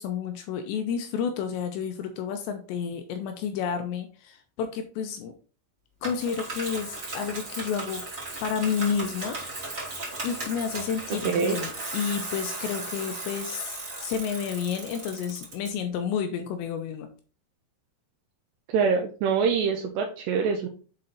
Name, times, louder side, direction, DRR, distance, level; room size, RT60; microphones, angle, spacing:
voice 1, 0.0-5.3 6.0-8.1 8.4-9.4 10.2-17.1, left 7 dB, 85° left, 7 dB, 2.6 m, -30 dB
Bicycle, 6.0-15.7, right 2 dB, 35° right, 1.2 m, -36 dB
voice 2, 11.2-11.6 18.7-20.7, right 5 dB, 85° right, 3 dB, 2.4 m, -24 dB
7.6 x 4.3 x 3.9 m, 0.38 s
omnidirectional pair, 5.7 m